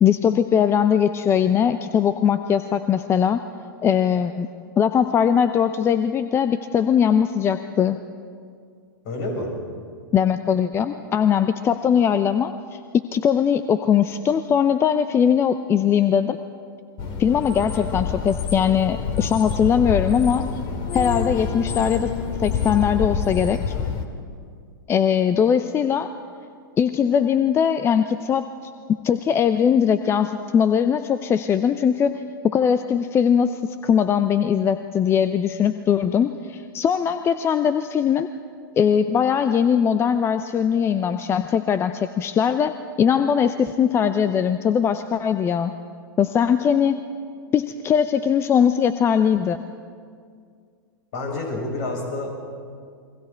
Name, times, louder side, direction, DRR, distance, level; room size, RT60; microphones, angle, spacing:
voice 1, 0.0-3.4 3.8-4.5 4.8-8.0 10.1-12.8 13.1-16.4 17.2-20.5 20.9-22.1 22.4-23.8 24.9-26.1 26.8-28.5 29.0-38.3 38.8-45.7 46.2-47.0 47.5-49.6, left 8 dB, 20° left, 11 dB, 0.7 m, -20 dB
voice 2, 9.0-9.5 51.1-52.3, left 2 dB, 55° left, 0 dB, 7.8 m, -28 dB
sound 1, 17.0-24.0, left 6 dB, 40° left, 2.3 m, -27 dB
30.0 x 23.0 x 4.6 m, 2.2 s
figure-of-eight pair, 105°, 12 cm